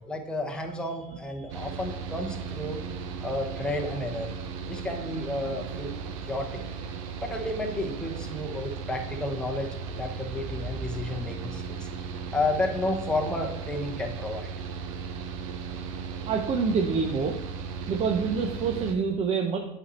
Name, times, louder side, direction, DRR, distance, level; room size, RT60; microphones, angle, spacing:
voice 1, 0.0-2.8 3.2-4.3 4.6-5.9 6.2-6.6 7.2-11.9 12.3-14.5, left 2 dB, 5° left, 1 dB, 1.1 m, -31 dB
Mechanical fan, 1.5-18.9, right 5 dB, 75° right, 0.9 m, -36 dB
voice 2, 16.2-17.4 17.9-19.6, right 5 dB, 35° right, 3 dB, 0.7 m, -26 dB
8.3 x 4.3 x 4.3 m, 0.92 s
supercardioid pair, 115°, 17 cm